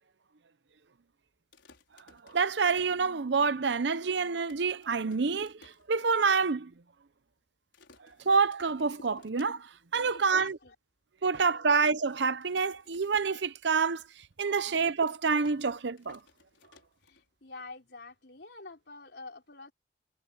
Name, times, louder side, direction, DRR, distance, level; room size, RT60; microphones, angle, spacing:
sound 1, 1.4-3.6 4.0-4.1 4.3-6.3 6.7-6.8 7.0-7.3 7.7-9.9 10.2-10.5 11.0-11.1 11.9-14.3 14.6-17.5, left 2 dB, 80° left, 5.5 m, -58 dB
voice 1, 2.2-6.7 8.3-10.6 11.2-14.0 14.4-16.2, right 5 dB, 70° right, 0.7 m, -27 dB
voice 2, 10.1-10.7 11.7-11.9 17.0-19.7, left 3 dB, 60° left, 4.1 m, -47 dB
head